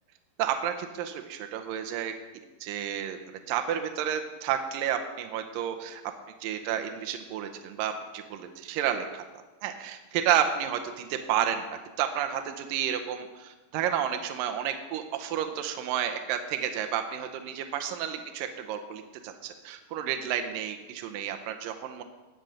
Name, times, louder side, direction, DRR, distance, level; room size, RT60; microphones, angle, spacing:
voice 1, 0.4-2.1 2.6-3.2 3.5-6.0 6.4-9.2 9.6-11.6 12.0-22.0, right 9 dB, 90° right, 6 dB, 1.9 m, -31 dB
13.0 x 5.2 x 8.4 m, 1.2 s
omnidirectional pair, 5.0 m